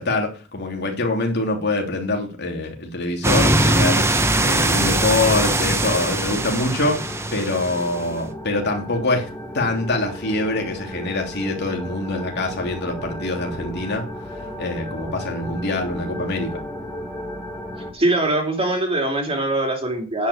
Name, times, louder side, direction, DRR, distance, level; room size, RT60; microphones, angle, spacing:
voice 1, 0.0-7.0 7.3-9.3 9.5-14.0 14.6-16.6, left 2 dB, 55° left, 3.0 m, -24 dB
sound 1, 3.2-8.0, right 1 dB, 15° right, 0.9 m, -21 dB
sound 2, 4.5-17.9, left 1 dB, 10° left, 2.2 m, -35 dB
voice 2, 17.9-20.3, right 1 dB, 30° right, 2.8 m, -22 dB
9.9 x 5.7 x 8.0 m
head